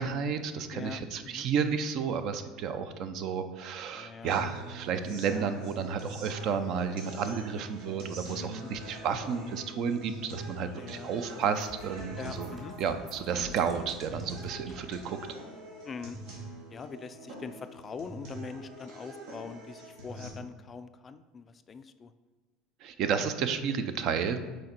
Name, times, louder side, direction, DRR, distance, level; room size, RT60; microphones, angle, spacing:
voice 1, 0.0-15.2 22.8-24.4, right 6 dB, 55° right, 9 dB, 0.5 m, -32 dB
voice 2, 0.7-1.5 3.9-4.3 8.4-8.7 10.7-11.1 12.2-12.8 15.8-16.2 16.7-22.1, left 5 dB, 25° left, 11 dB, 0.3 m, -43 dB
sound 1, 4.3-20.3, right 1 dB, 80° right, 2.1 m, -44 dB
sound 2, 10.6-14.9, equal, 30° right, 1.8 m, -50 dB
6.3 x 4.4 x 4.3 m, 1.2 s
supercardioid pair, 120°, 0 cm